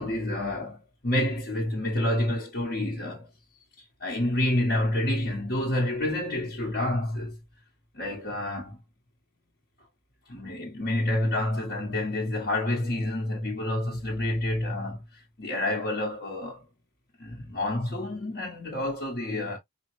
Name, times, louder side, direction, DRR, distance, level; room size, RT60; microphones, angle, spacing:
voice 1, 0.0-3.3 4.0-7.4 7.9-8.8 10.3-16.6 17.2-19.6, left 1 dB, 50° left, 1.2 m, -28 dB
4.9 x 2.1 x 3.0 m
head